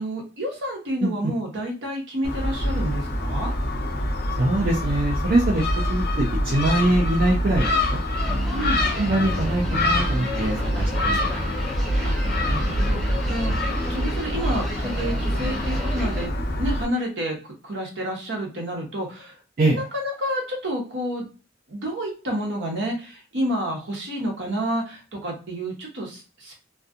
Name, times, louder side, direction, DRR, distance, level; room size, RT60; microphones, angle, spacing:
voice 1, 0.0-3.5 8.5-8.8 12.0-13.6 13.9-16.3 16.6-19.4 19.7-21.3 21.7-26.5, equal, 65° right, 1 dB, 0.9 m, -29 dB
Gull seagull, 2.2-16.8, left 1 dB, 55° left, 0.6 m, -25 dB
voice 2, 4.4-8.0 8.9-11.3 19.6-19.8, right 2 dB, 50° right, -2 dB, 0.4 m, -23 dB
sound 1, 8.1-16.3, left 1 dB, ahead, 0.6 m, -33 dB
2.6 x 2.2 x 2.4 m, 0.34 s
head